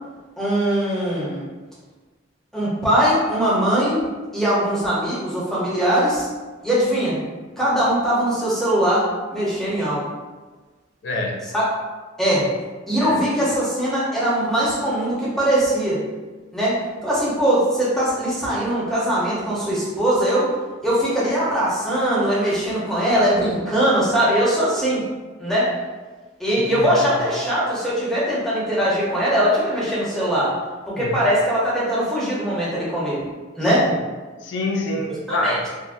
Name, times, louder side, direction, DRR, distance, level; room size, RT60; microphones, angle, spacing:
voice 1, 0.4-1.4 2.5-6.3 6.6-7.2 7.6-10.0 11.5-11.6 12.2-12.5 12.9-16.0 16.5-20.5 20.8-25.0 25.4-25.7 26.4-30.5 30.9-33.2 33.5-33.9 35.3-35.6, equal, ahead, -8 dB, 0.8 m, -21 dB
voice 2, 11.0-11.4 13.0-13.2 26.6-27.2 31.0-31.2 33.6-33.8 34.4-35.7, left 2 dB, 65° left, 1 dB, 0.4 m, -27 dB
3.5 x 2.1 x 2.5 m, 1.3 s
head